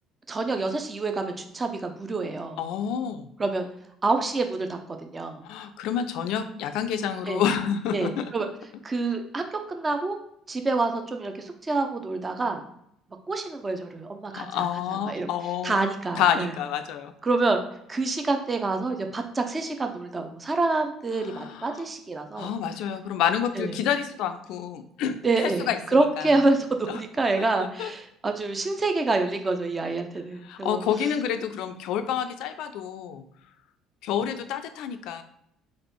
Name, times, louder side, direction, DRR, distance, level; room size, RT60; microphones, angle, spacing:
voice 1, 0.3-2.6 3.4-3.7 4.0-5.4 7.3-7.4 7.9-8.5 8.8-10.2 10.5-12.6 13.3-14.7 15.1-15.3 15.6-16.5 17.2-17.6 17.9-22.5 23.6-23.7 25.2-30.8, right 3 dB, 25° right, 5 dB, 0.7 m, -27 dB
voice 2, 2.6-3.3 5.4-8.3 14.3-15.8 16.2-17.1 21.1-21.9 22.3-26.3 26.9-27.0 27.4-27.5 27.8-27.9 30.4-33.2 34.0-35.2, left 8 dB, 65° left, 9 dB, 0.4 m, -28 dB
4.1 x 2.5 x 4.6 m, 0.75 s
hypercardioid pair, 55°, 0 cm